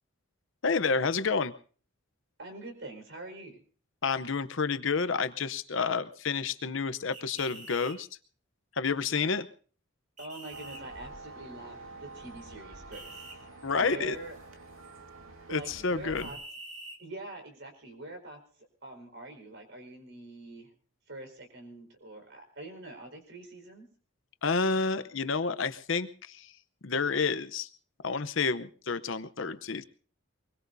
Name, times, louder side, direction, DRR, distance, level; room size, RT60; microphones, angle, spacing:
voice 1, 0.6-1.5 4.0-8.1 8.8-9.5 13.6-14.2 15.5-16.3 24.4-26.5 26.8-27.7 28.0-29.8, left 4 dB, 65° left, 13 dB, 0.8 m, -29 dB
voice 2, 2.4-3.6 10.2-13.2 13.8-14.4 15.5-16.4 17.0-18.4 18.8-20.7 21.1-23.9, right 2 dB, 60° right, 5 dB, 4.8 m, -44 dB
sound 1, 7.1-8.0 10.2-10.8 12.9-13.4 16.2-17.0, right 1 dB, 35° right, 2.6 m, -46 dB
sound 2, 10.5-16.3, right 2 dB, 80° right, 2.6 m, -48 dB
24.0 x 21.5 x 2.7 m, 0.42 s
head